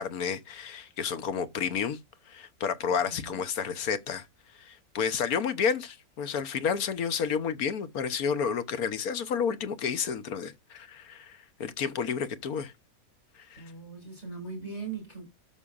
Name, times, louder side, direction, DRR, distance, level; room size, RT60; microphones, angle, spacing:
voice 1, 0.0-2.0 2.3-4.3 4.6-12.7 13.5-13.7, left 7 dB, 75° left, 1.5 m, -31 dB
voice 2, 2.9-3.4 13.6-15.3, right 4 dB, 45° left, 5.8 m, -40 dB
12.5 x 6.5 x 2.5 m
omnidirectional pair, 1.6 m